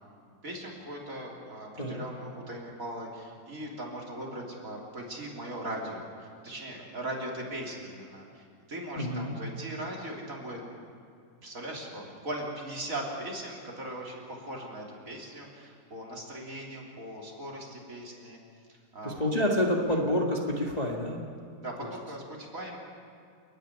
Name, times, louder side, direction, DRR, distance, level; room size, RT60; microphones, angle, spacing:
voice 1, 0.4-10.6 11.4-18.4 18.7-19.2 21.6-22.8, right 1 dB, 45° right, -2 dB, 3.9 m, -39 dB
voice 2, 9.0-9.3 19.0-21.2 21.8-21.9, left 1 dB, 20° left, -2 dB, 1.9 m, -28 dB
29.5 x 10.5 x 9.9 m, 2.3 s
omnidirectional pair, 1.9 m